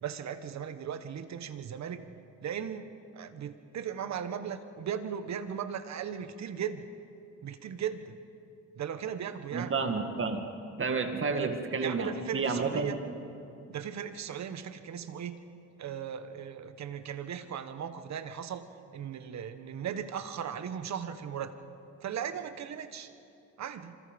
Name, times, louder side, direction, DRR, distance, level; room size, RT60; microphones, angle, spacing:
voice 1, 0.0-2.0 2.4-6.8 7.4-8.2 8.7-9.7 11.4-11.5 11.8-13.0 13.7-15.4 15.8-18.7 18.9-21.5 22.0-23.1 23.6-24.0, right 8 dB, 65° right, 10 dB, 1.4 m, -37 dB
voice 2, 9.5-10.5 10.8-13.0, right 4 dB, 45° right, 6 dB, 2.2 m, -30 dB
27.5 x 26.0 x 5.4 m, 2.6 s
cardioid pair, 90°, 30 cm